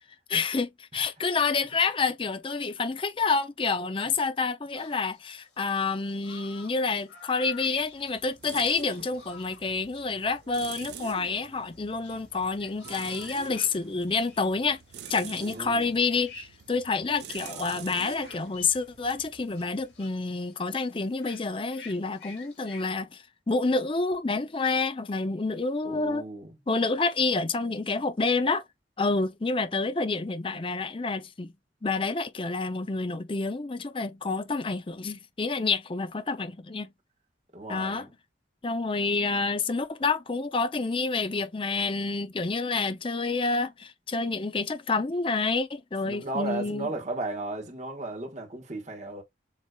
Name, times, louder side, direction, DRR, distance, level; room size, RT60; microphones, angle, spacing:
voice 1, 0.3-14.8 15.1-26.2 26.7-28.6 29.0-31.5 31.8-36.9 37.7-38.1 38.6-46.9, left 4 dB, 30° left, 0.5 m, -28 dB
sound 1, 4.7-22.8, left 5 dB, 65° left, 2.2 m, -51 dB
sound 2, 7.5-20.1, right 7 dB, 65° right, 0.7 m, -46 dB
voice 2, 15.5-15.9 25.8-26.6 37.5-38.1 46.0-49.2, right 2 dB, 40° right, 1.4 m, -35 dB
7.2 x 2.9 x 2.3 m
head